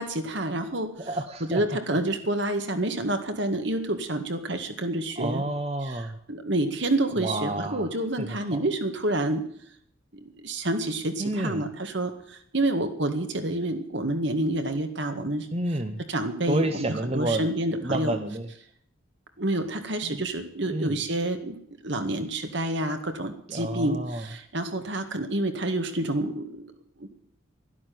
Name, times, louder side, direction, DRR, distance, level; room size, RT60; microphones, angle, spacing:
voice 1, 0.0-0.9 1.5-5.4 5.8-6.0 6.3-9.4 10.4-15.5 16.1-16.9 17.1-18.2 19.4-26.7 27.0-27.2, right 1 dB, 60° right, 7 dB, 2.0 m, -28 dB
voice 2, 1.0-1.6 5.2-6.2 7.2-7.9 8.2-8.6 11.2-11.6 15.5-16.0 16.5-17.5 17.8-18.5 20.0-20.2 20.7-21.0 23.5-24.3, right 1 dB, 30° right, 7 dB, 0.9 m, -29 dB
12.5 x 12.5 x 9.4 m, 0.65 s
head